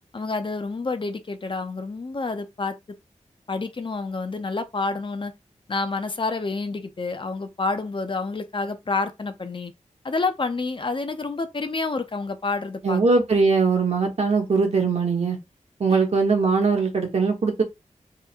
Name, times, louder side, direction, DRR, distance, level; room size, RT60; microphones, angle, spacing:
voice 1, 0.1-3.0 3.5-5.3 5.7-9.7 10.0-13.0, left 3 dB, 40° left, 0.7 m, -28 dB
voice 2, 12.8-15.4 15.8-17.6, right 4 dB, 60° right, 1.4 m, -21 dB
3.7 x 2.2 x 4.4 m
wide cardioid pair, 75°, 13 cm